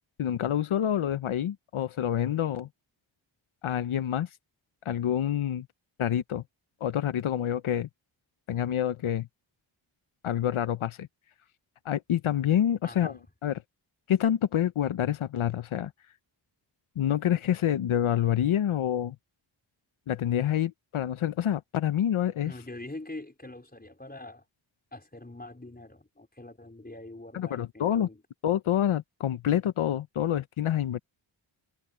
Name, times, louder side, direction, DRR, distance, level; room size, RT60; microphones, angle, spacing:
voice 1, 0.2-2.7 3.6-4.3 4.8-5.7 6.0-6.4 6.8-7.9 8.5-9.3 10.2-11.1 11.8-13.5 14.1-15.9 17.0-19.2 20.1-22.5 27.3-28.1 28.4-31.0, left 10 dB, 85° left, 0.8 m, -27 dB
voice 2, 12.8-13.2 22.4-24.4 24.9-28.2, left 2 dB, 20° left, 4.7 m, -44 dB
cardioid pair, 40°, 48 cm